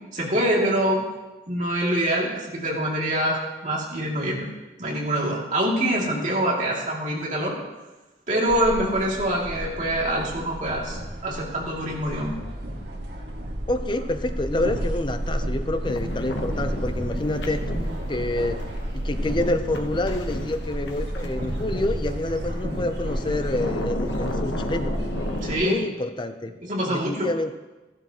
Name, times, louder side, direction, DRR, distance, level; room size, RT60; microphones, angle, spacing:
voice 1, 0.1-1.0 1.5-4.4 4.8-7.6 8.3-12.3 25.4-25.8 26.6-27.3, right 1 dB, 45° right, -3 dB, 2.5 m, -25 dB
sound 1, 8.5-25.5, equal, 70° right, 1.9 m, -31 dB
voice 2, 13.7-17.6 18.1-18.6 18.9-24.9 25.5-26.5 26.8-27.5, left 1 dB, 25° left, 9 dB, 0.6 m, -27 dB
sound 2, 15.8-25.6, left 1 dB, 85° left, 1.0 m, -34 dB
14.5 x 11.5 x 3.0 m, 1.1 s
head